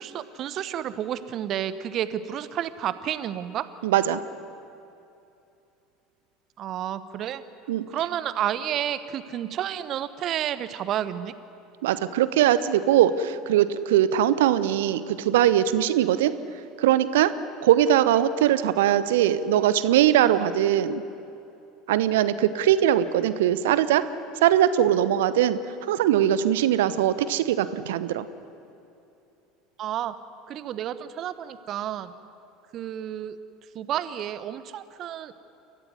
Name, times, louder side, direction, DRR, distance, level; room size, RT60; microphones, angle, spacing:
voice 1, 0.0-3.7 6.6-7.4 7.9-11.3 29.8-30.1 30.5-32.1 32.7-33.4 33.7-35.4, right 10 dB, 45° right, 13 dB, 1.2 m, -30 dB
voice 2, 3.8-4.2 7.7-7.8 11.8-16.3 16.8-17.3 17.6-21.0 21.9-24.1 24.4-25.6 25.9-28.3, right 11 dB, 65° right, 14 dB, 1.0 m, -21 dB
29.5 x 14.5 x 9.6 m, 2.8 s
figure-of-eight pair, 70°, 0 cm